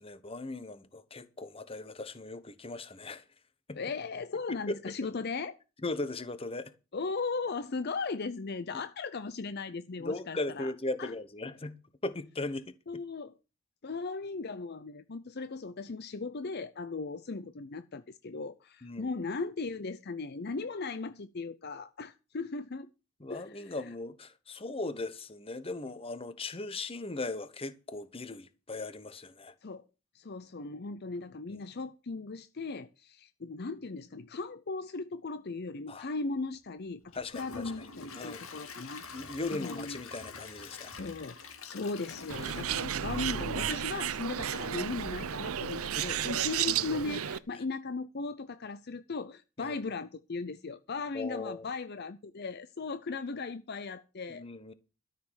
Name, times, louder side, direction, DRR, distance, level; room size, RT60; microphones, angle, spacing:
voice 1, 0.0-3.2 3.7-3.8 4.7-4.8 5.8-6.7 10.0-13.0 18.8-19.1 23.2-29.5 35.9-36.1 37.1-37.9 38.1-38.4 39.1-40.9 45.8-46.1 49.6-49.7 51.1-51.7 54.3-54.7, left 2 dB, 25° left, 1.0 m, -38 dB
voice 2, 3.7-5.6 6.9-10.7 11.0-11.1 12.9-13.3 13.8-22.9 23.3-23.9 29.6-29.9 30.1-40.0 40.9-54.4, left 4 dB, 45° left, 0.6 m, -37 dB
Gurgling / Toilet flush / Trickle dribble, 37.1-44.1 44.6-44.7 45.1-45.2, left 4 dB, 70° left, 2.3 m, -47 dB
Bird, 42.3-47.4, right 9 dB, 75° right, 0.7 m, -33 dB
13.0 x 6.6 x 7.4 m
head